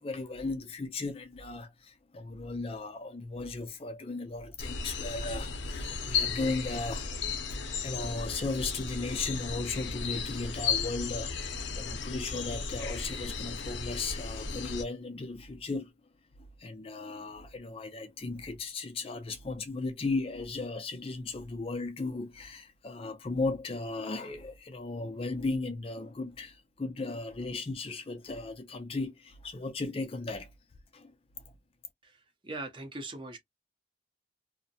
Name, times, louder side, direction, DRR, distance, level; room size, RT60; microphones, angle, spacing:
voice 1, 0.0-7.2 7.5-15.9 16.6-30.5 30.9-31.1, left 3 dB, 30° left, 0.4 m, -36 dB
sound 1, 4.6-14.8, left 5 dB, 80° left, 0.5 m, -35 dB
voice 2, 32.0-33.4, right 2 dB, 25° right, 0.6 m, -41 dB
2.6 x 2.0 x 2.6 m
head